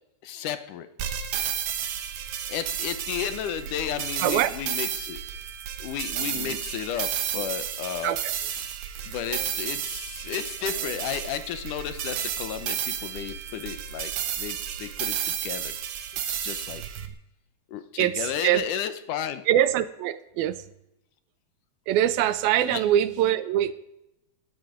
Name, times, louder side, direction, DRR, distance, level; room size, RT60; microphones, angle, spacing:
voice 1, 0.2-0.9 2.5-5.2 5.8-8.1 8.6-8.7 9.0-14.1 14.4-15.8 16.1-16.8 17.7-19.4 22.7-22.8, left 9 dB, 70° left, 11 dB, 2.3 m, -33 dB
sound 1, 1.0-17.1, right 9 dB, 70° right, 2.8 m, -32 dB
voice 2, 4.2-4.5 6.3-6.6 7.3-7.4 8.0-8.3 9.3-9.5 10.8-10.9 17.0-17.1 18.0-18.7 19.5-20.7 21.9-23.7, right 12 dB, 85° right, 14 dB, 2.7 m, -24 dB
19.5 x 14.5 x 5.1 m, 0.83 s
omnidirectional pair, 4.3 m